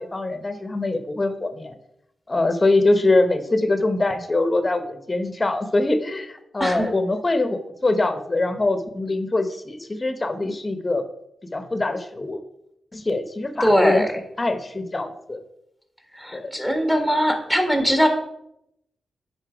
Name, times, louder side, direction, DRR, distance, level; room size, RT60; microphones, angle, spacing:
voice 1, 0.0-1.7 2.3-11.0 11.5-12.4 12.9-14.1 14.4-15.4 16.3-16.5, left 2 dB, 30° left, 9 dB, 0.9 m, -23 dB
voice 2, 13.6-14.1 16.2-18.1, equal, 10° right, 4 dB, 1.6 m, -20 dB
9.7 x 4.1 x 5.0 m, 0.81 s
cardioid pair, 75°, 0 cm